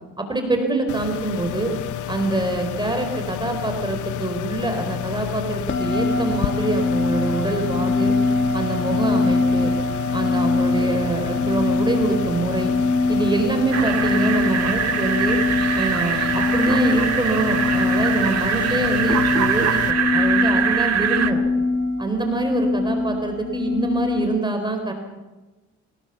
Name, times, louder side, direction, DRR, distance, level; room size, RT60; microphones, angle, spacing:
voice 1, 0.2-1.7 2.1-8.2 8.5-9.7 10.1-12.7 13.1-15.4 15.7-21.4 22.0-24.9, right 2 dB, 15° right, 5 dB, 4.3 m, -25 dB
sound 1, 0.9-19.9, left 13 dB, 75° left, 0.8 m, -30 dB
sound 2, 5.7-24.4, left 3 dB, 40° left, 2.0 m, -23 dB
sound 3, 13.7-21.3, right 7 dB, 60° right, 1.8 m, -23 dB
24.0 x 19.5 x 7.0 m, 1.1 s
cardioid pair, 90°, 30 cm